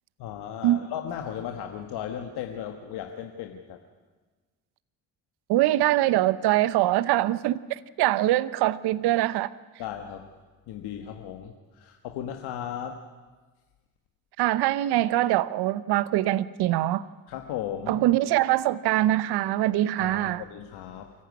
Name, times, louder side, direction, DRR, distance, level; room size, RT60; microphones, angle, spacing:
voice 1, 0.2-3.8 9.8-10.3 10.7-13.0 17.3-18.0 20.0-21.1, left 9 dB, 75° left, 1.7 m, -36 dB
voice 2, 5.5-7.6 8.0-9.5 14.4-17.0 17.9-20.4, right 15 dB, 75° right, 0.9 m, -23 dB
25.0 x 15.0 x 9.6 m
supercardioid pair, 60°, 39 cm